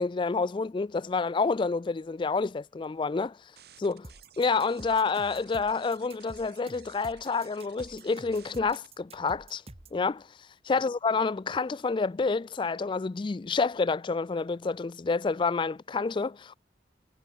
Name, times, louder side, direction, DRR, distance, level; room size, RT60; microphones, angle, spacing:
voice 1, 0.0-3.4 3.8-4.1 4.4-9.6 9.9-10.3 10.6-16.5, left 4 dB, 25° left, 0.3 m, -28 dB
sound 1, 3.6-8.9, right 9 dB, 60° right, 7.8 m, -56 dB
sound 2, 4.0-10.0, right 1 dB, 35° right, 2.5 m, -48 dB
head